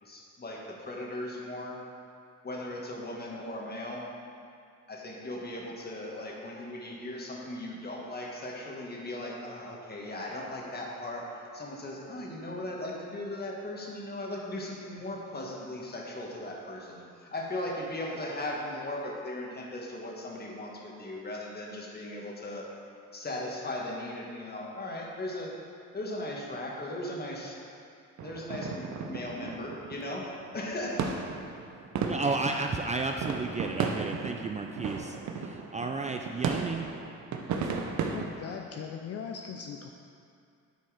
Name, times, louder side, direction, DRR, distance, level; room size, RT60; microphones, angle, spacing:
voice 1, 0.0-1.8 2.4-4.0 4.9-22.7 23.1-25.5 25.9-27.6 28.2-31.0, left 1 dB, 30° left, -1 dB, 1.5 m, -38 dB
sound 1, 28.2-38.3, right 5 dB, 70° right, 0.8 m, -35 dB
voice 2, 32.0-36.9, right 3 dB, 25° right, 3 dB, 0.4 m, -33 dB
voice 3, 38.1-39.9, left 6 dB, 55° left, 3 dB, 0.5 m, -39 dB
9.3 x 4.5 x 4.8 m, 2.4 s
cardioid pair, 90°, 30 cm